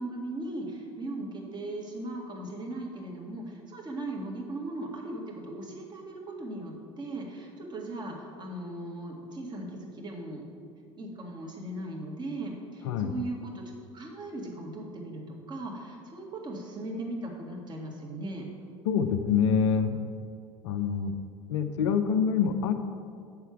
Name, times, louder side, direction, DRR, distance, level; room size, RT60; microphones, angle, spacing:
voice 1, 0.0-10.4 11.0-18.4, right 1 dB, 25° right, 0 dB, 1.9 m, -38 dB
voice 2, 18.9-20.0 20.6-21.1 21.5-22.7, left 7 dB, 65° left, 8 dB, 0.6 m, -26 dB
6.9 x 5.7 x 7.2 m, 2.3 s
figure-of-eight pair, 70°, 16 cm